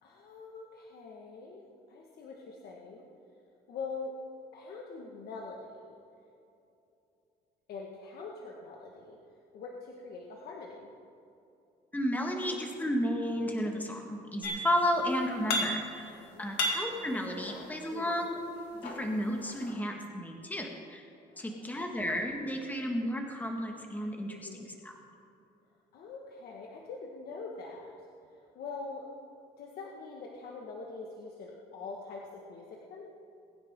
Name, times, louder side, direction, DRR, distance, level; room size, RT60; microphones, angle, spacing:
voice 1, 0.0-3.0 3.7-4.1 4.5-6.0 7.7-9.2 9.5-10.9 15.6-16.4 17.9-18.2 21.3-22.0 24.3-24.6 25.9-27.9 28.2-29.1 29.6-33.1, left 4 dB, 65° left, -1 dB, 1.6 m, -44 dB
voice 2, 11.9-18.4 18.7-21.1 21.4-24.9, equal, 10° left, 2 dB, 1.7 m, -33 dB
sound 1, 14.4-15.0 15.2-16.1 16.4-18.0 18.6-19.7, left 1 dB, 85° left, 2.3 m, -34 dB
22.0 x 9.7 x 3.7 m, 2.8 s
cardioid pair, 110°, 17 cm